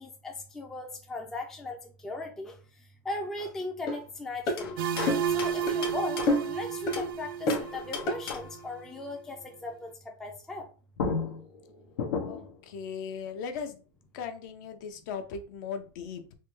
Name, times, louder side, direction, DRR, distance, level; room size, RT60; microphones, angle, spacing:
voice 1, 0.0-2.6 3.0-4.8 5.3-10.7, left 2 dB, 5° left, 1 dB, 0.3 m, -38 dB
sound 1, 3.9-4.0 4.5-4.6 5.1-5.3 5.7-5.8 6.3-6.6 6.9-7.0 7.5-7.7 8.1-8.2, left 1 dB, 30° left, 0.9 m, -27 dB
sound 2, 4.6-7.2 7.5-8.7 10.6-10.7 11.0-12.6, left 5 dB, 90° left, 0.8 m, -35 dB
sound 3, 4.8-8.5, right 8 dB, 80° right, 0.4 m, -32 dB
voice 2, 12.3-13.8 14.1-16.4, left 6 dB, 55° left, 8 dB, 0.6 m, -38 dB
3.2 x 2.1 x 3.0 m, 0.36 s
supercardioid pair, 165°, 12 cm